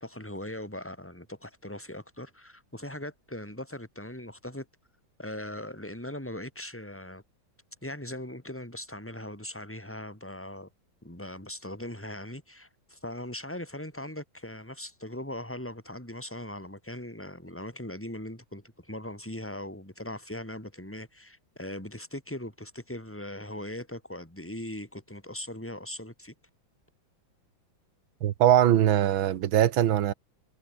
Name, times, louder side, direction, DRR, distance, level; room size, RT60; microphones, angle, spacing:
voice 1, 0.0-4.7 5.2-7.2 7.8-10.7 11.0-26.3, left 1 dB, 5° left, 5.8 m, -40 dB
voice 2, 28.2-30.1, right 11 dB, 85° right, 1.9 m, -22 dB
omnidirectional pair, 2.1 m